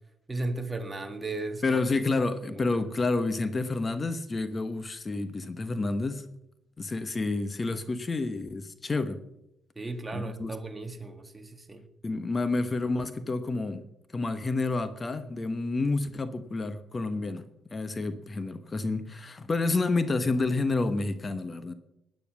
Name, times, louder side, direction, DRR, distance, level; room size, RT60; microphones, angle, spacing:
voice 1, 0.3-1.6 2.5-2.8 9.7-11.9, right 2 dB, 15° right, 1.6 m, -35 dB
voice 2, 1.6-6.3 6.8-9.2 10.1-10.5 12.0-13.8 14.1-17.4 17.7-21.7, left 3 dB, 30° left, 1.1 m, -29 dB
15.5 x 9.5 x 6.1 m
cardioid pair, 90°, 0 cm